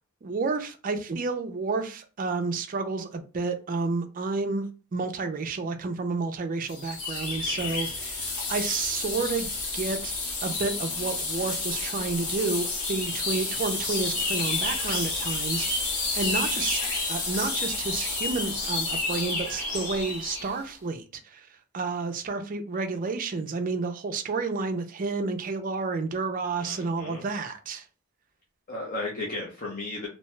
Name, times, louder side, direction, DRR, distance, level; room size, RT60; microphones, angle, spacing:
voice 1, 0.2-9.5 9.7-10.1 10.4-16.8 17.1-27.9, right 3 dB, 40° right, 0.4 m, -30 dB
sound 1, 6.7-20.5, left 3 dB, 70° left, 1.1 m, -30 dB
voice 2, 26.6-27.2 28.7-30.1, left 2 dB, 40° left, 0.6 m, -35 dB
2.7 x 2.2 x 3.1 m
head